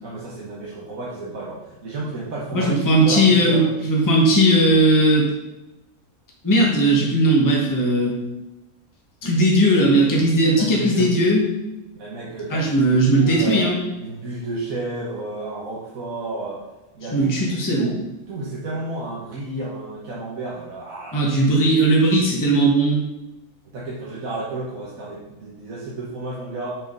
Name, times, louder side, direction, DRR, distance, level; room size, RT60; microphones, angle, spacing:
voice 1, 0.0-3.7 10.6-11.1 11.9-13.7 14.0-16.6 16.9-21.5 23.7-26.8, right 2 dB, 65° right, -6 dB, 1.6 m, -31 dB
voice 2, 2.5-5.3 6.4-8.1 9.2-11.4 12.5-13.8 17.1-17.9 21.1-23.0, right 1 dB, 15° left, -3 dB, 1.3 m, -17 dB
6.4 x 4.9 x 5.3 m, 1.0 s
omnidirectional pair, 1.6 m